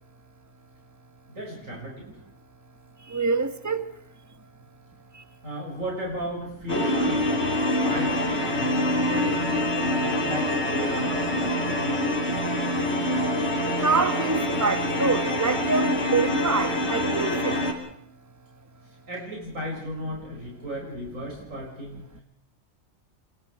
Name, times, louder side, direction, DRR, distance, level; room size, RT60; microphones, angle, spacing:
voice 1, 1.3-2.0 5.4-7.3 7.7-9.5 9.8-12.2 19.1-22.0, equal, 70° right, 6.7 m, -35 dB
voice 2, 3.1-3.9 13.8-17.6, right 4 dB, 15° right, 1.2 m, -26 dB
sound 1, 6.7-17.7, left 1 dB, 50° left, 3.7 m, -25 dB
28.0 x 22.0 x 4.8 m
omnidirectional pair, 1.4 m